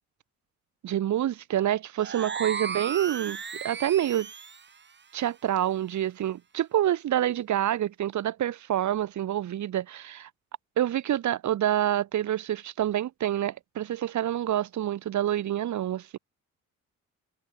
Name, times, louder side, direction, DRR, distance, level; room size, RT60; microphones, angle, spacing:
voice 1, 0.8-4.3 5.1-10.3 10.8-16.2, right 11 dB, 70° right, 4.2 m, -27 dB
sound 1, 2.0-4.7, right 6 dB, 35° right, 2.3 m, -35 dB
cardioid pair, 90°, 30 cm